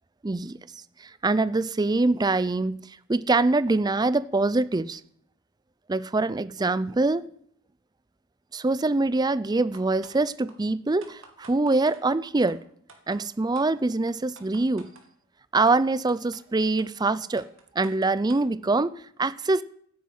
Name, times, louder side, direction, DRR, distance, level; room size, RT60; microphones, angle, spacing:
voice 1, 0.2-0.6 1.0-5.0 5.9-7.2 8.5-12.6 13.1-14.9 15.5-17.5 17.8-19.6, right 3 dB, 20° right, 0.4 m, -24 dB
sound 1, 9.7-10.2 10.5-10.6 11.0-12.0 12.5-12.6 12.9-13.2 13.5-13.7 14.1-15.1 15.7-15.8 16.1-16.4 16.8-16.9 17.4-18.5, right 3 dB, 65° right, 2.5 m, -50 dB
16.0 x 9.5 x 5.6 m
head